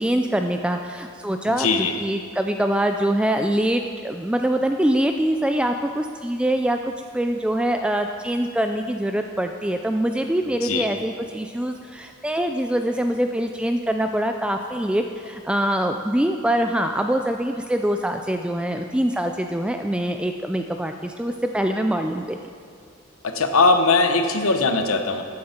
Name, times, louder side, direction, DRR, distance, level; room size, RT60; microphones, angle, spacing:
voice 1, 0.0-22.4, right 1 dB, 5° right, 5 dB, 0.3 m, -24 dB
voice 2, 1.5-1.9 10.6-10.8 23.2-25.2, left 3 dB, 85° left, 6 dB, 1.0 m, -20 dB
14.5 x 9.4 x 4.3 m, 2.2 s
head